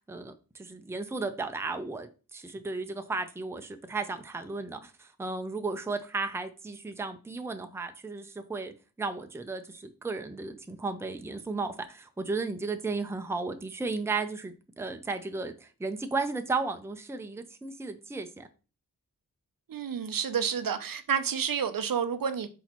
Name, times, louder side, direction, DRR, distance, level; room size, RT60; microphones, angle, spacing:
voice 1, 0.1-18.5, right 3 dB, 5° right, 0.4 m, -34 dB
voice 2, 19.7-22.5, right 7 dB, 70° right, 0.5 m, -29 dB
4.1 x 4.1 x 2.9 m
wide cardioid pair, 75°, 36 cm